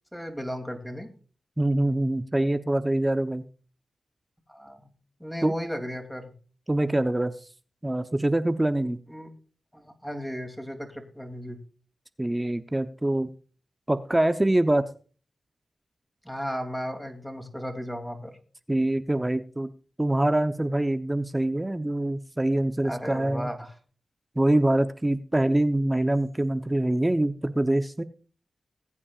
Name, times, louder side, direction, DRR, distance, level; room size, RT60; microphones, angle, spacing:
voice 1, 0.1-1.1 4.5-4.9 5.2-6.3 9.1-9.3 9.7-11.6 16.2-18.3 22.8-23.7, equal, ahead, 4 dB, 2.9 m, -35 dB
voice 2, 1.6-3.4 5.4-5.5 6.7-7.3 7.8-9.0 12.2-13.3 13.9-14.8 18.7-19.7 20.0-23.5 24.4-28.0, right 1 dB, 20° right, 9 dB, 0.9 m, -24 dB
20.0 x 8.5 x 2.5 m, 0.39 s
cardioid pair, 50°, 0 cm